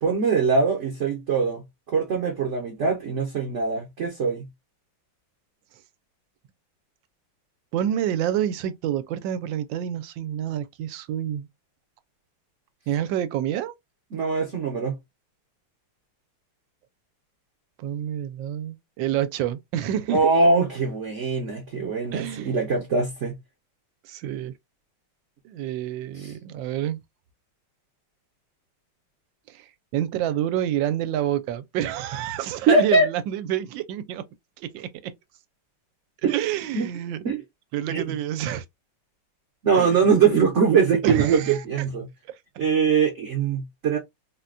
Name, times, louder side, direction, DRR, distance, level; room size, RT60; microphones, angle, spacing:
voice 1, 0.0-4.5 14.1-15.0 20.1-23.4 26.2-26.3 32.7-33.1 36.2-36.3 36.7-36.9 37.2-37.4 37.9-38.0 39.6-42.1 42.6-44.0, right 5 dB, 55° right, 0.9 m, -22 dB
voice 2, 7.7-11.5 12.9-13.7 17.8-20.3 22.1-22.6 24.0-24.5 25.4-27.0 29.5-34.3 34.6-35.1 36.3-37.2 37.7-38.6 39.7-40.0 41.0-41.6 42.2-42.4, right 11 dB, 80° right, 1.3 m, -28 dB
3.9 x 2.2 x 2.4 m
omnidirectional pair, 2.0 m